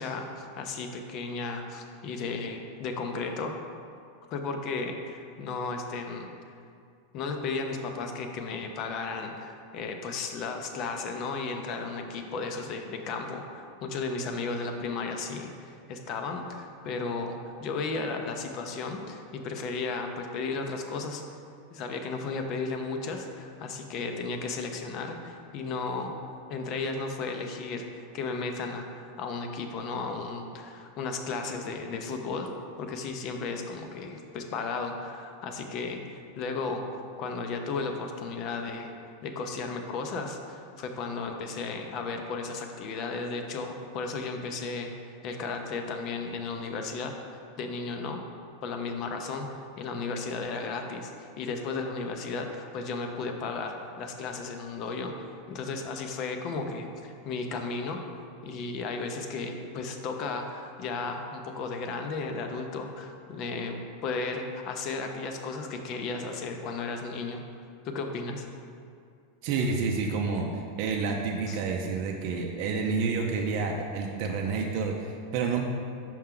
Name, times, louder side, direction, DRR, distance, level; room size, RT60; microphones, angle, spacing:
voice 1, 0.0-3.5 4.3-6.3 7.1-21.2 21.7-26.1 26.5-32.5 32.8-36.0 36.4-36.8 37.2-38.9 39.2-44.9 45.2-48.2 48.6-55.1 55.5-58.0 58.4-67.4 67.8-68.4 71.5-71.6, left 4 dB, 45° left, 4 dB, 0.6 m, -34 dB
voice 2, 69.4-75.6, right 4 dB, 55° right, 1 dB, 0.5 m, -29 dB
5.6 x 4.5 x 3.7 m, 2.4 s
supercardioid pair, 130°, 0 cm